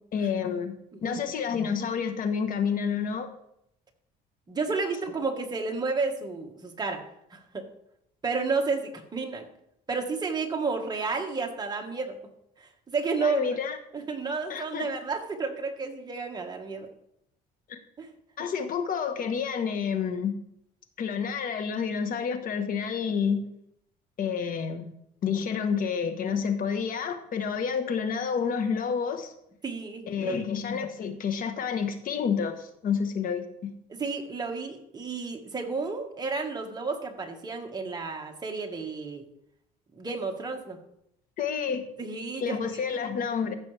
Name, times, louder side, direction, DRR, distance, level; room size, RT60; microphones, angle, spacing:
voice 1, 0.1-0.7 1.0-3.3 13.2-13.8 14.5-14.9 17.7-17.8 18.4-20.4 21.0-23.4 24.2-24.9 25.2-29.3 30.1-33.7 41.4-41.8 42.4-43.5, left 6 dB, 55° left, 8 dB, 1.3 m, -29 dB
voice 2, 0.9-1.2 4.5-7.0 7.3-7.7 8.2-9.5 9.9-12.2 12.9-13.6 13.9-16.9 18.0-18.1 18.4-18.5 29.6-30.4 33.9-39.2 39.9-40.8 42.0-42.8, right 4 dB, 25° right, 2 dB, 1.7 m, -31 dB
14.5 x 6.0 x 3.4 m, 0.76 s
cardioid pair, 110°, 17 cm